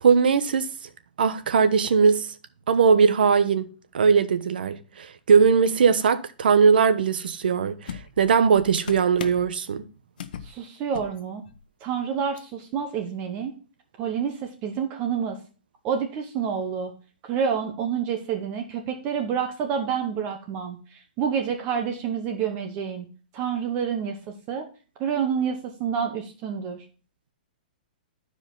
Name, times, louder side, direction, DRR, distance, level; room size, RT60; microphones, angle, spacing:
voice 1, 0.0-0.7 1.2-2.3 2.7-3.7 3.9-9.8, right 6 dB, 80° right, 1.0 m, -20 dB
sound 1, 7.4-7.5 7.9-9.5 10.2-10.5 10.8-11.2 11.5-11.6 12.4-12.5, left 8 dB, 65° left, 1.0 m, -38 dB
voice 2, 10.4-11.4 11.8-13.5 14.0-15.4 15.8-16.9 17.3-23.1 23.3-24.2 24.5-24.7 25.0-26.8, right 7 dB, 25° right, 1.1 m, -28 dB
12.5 x 4.9 x 3.9 m
hypercardioid pair, 165°, 5 cm